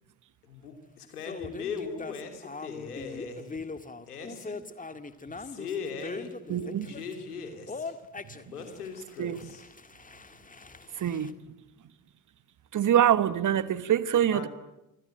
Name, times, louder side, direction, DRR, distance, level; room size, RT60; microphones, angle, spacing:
voice 1, 0.4-3.6 4.1-4.6 5.4-8.0 8.4-9.6 14.2-14.5, left 5 dB, 80° left, 3.2 m, -39 dB
sound 1, 1.3-7.2 7.7-11.3, left 3 dB, 15° left, 1.9 m, -41 dB
voice 2, 6.5-7.0 9.2-9.5 10.9-11.3 12.7-14.5, right 10 dB, 40° right, 1.3 m, -25 dB
27.0 x 20.5 x 9.1 m
figure-of-eight pair, 45°, 45 cm